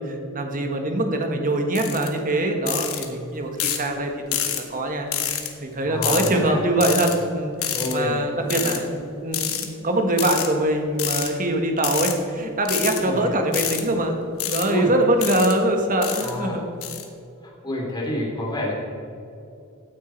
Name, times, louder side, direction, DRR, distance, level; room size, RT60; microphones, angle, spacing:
voice 1, 0.0-4.1 4.5-8.9 9.2-14.2 14.5-16.6, right 1 dB, 40° right, 4 dB, 1.5 m, -23 dB
sound 1, 1.8-2.1 2.7-3.1 3.6-3.9 4.3-4.6 5.1-5.5 6.0-6.3 6.8-7.2 7.6-7.9 8.5-8.8 9.3-9.7 10.2-10.5 11.0-11.3 11.8-12.1 12.7-13.0 13.5-13.8 14.4-14.7 15.2-15.5 16.0-16.3 16.8-17.0, left 10 dB, 70° left, 1.3 m, -27 dB
voice 2, 5.8-6.6 7.7-8.3 8.5-8.8 13.0-13.4 14.7-14.9 15.2-15.3 16.2-16.6 17.6-18.7, left 1 dB, 20° left, -3 dB, 3.2 m, -28 dB
16.0 x 9.3 x 4.5 m, 2.6 s
head